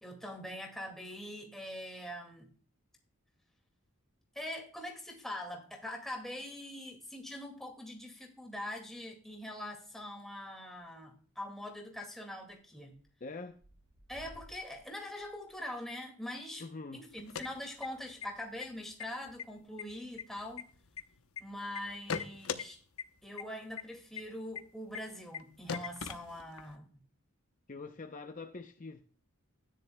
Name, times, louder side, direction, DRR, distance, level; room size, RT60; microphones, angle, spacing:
voice 1, 0.0-2.5 4.3-13.0 14.1-16.7 16.9-20.7 21.4-22.8 23.2-27.0, left 1 dB, ahead, 2.0 m, -43 dB
sound 1, 10.2-10.5 10.8-11.1 11.4-11.5 11.6-11.7 12.5-13.1 13.3-18.4 18.8-18.9 19.1-19.7 20.3-21.0, equal, 70° right, 5.1 m, -61 dB
voice 2, 13.2-13.6 16.6-17.1 27.7-29.0, left 3 dB, 35° left, 0.6 m, -44 dB
sound 2, 17.1-18.3 18.6-18.7 19.0-19.4 19.8-21.4 21.8-22.6 23.0-23.1 23.4-23.5 23.8-23.9 24.2-24.3 24.6-24.7 24.9-25.0 25.3-25.4 25.7-26.7, left 6 dB, 75° left, 0.8 m, -39 dB
13.0 x 10.0 x 2.2 m
head